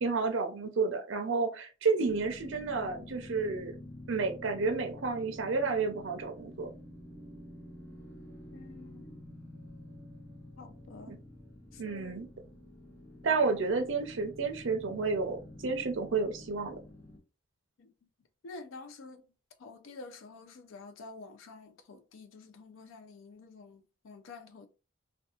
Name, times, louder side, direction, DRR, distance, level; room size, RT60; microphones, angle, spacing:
voice 1, 0.0-3.7 4.1-6.7 11.1-11.2 11.8-12.3 13.2-16.8, right 4 dB, 70° right, 0.6 m, -31 dB
sound 1, 2.1-17.2, left 1 dB, 10° left, 0.5 m, -49 dB
voice 2, 8.5-9.2 10.6-11.2 11.7-12.3 17.8-17.9 18.4-19.2 19.6-24.7, left 3 dB, 80° left, 0.4 m, -49 dB
2.7 x 2.2 x 2.3 m
head